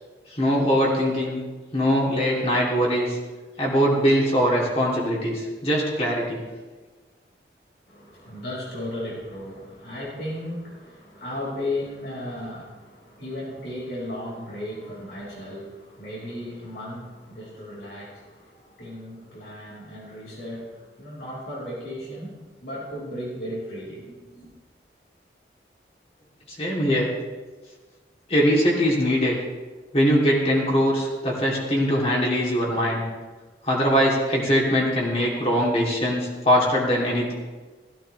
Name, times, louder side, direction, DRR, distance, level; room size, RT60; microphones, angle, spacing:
voice 1, 0.3-1.4 1.7-3.2 3.6-6.4 26.5-27.1 28.3-29.4 29.9-33.0 33.6-37.3, equal, 35° left, -4 dB, 3.1 m, -22 dB
voice 2, 7.9-24.5, left 1 dB, 75° left, -6 dB, 5.4 m, -35 dB
16.5 x 14.5 x 3.4 m, 1.3 s
head